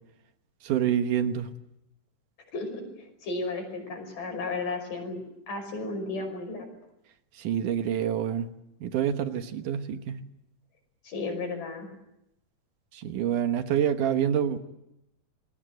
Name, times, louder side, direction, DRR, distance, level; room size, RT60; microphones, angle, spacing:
voice 1, 0.6-1.5 7.4-8.5 8.8-10.2 12.9-14.6, right 9 dB, 75° right, 8 dB, 2.7 m, -27 dB
voice 2, 2.5-5.2 5.5-6.7 11.0-11.9, left 3 dB, 75° left, 5 dB, 7.3 m, -34 dB
27.0 x 20.5 x 7.9 m, 0.84 s
omnidirectional pair, 3.8 m